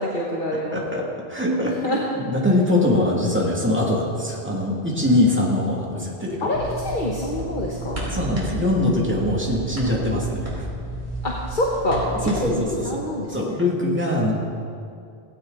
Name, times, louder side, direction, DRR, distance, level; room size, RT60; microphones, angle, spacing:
voice 1, 0.0-0.8 1.6-2.1 6.4-8.1 11.2-13.6, left 1 dB, 45° left, -3 dB, 1.6 m, -26 dB
voice 2, 0.5-6.5 8.1-10.7 12.3-12.5 12.9-13.0 13.3-14.3, left 1 dB, 10° right, -3 dB, 2.5 m, -22 dB
sound 1, 6.5-12.6, right 2 dB, 45° right, 4.7 m, -32 dB
17.0 x 17.0 x 4.1 m, 2.4 s
omnidirectional pair, 1.2 m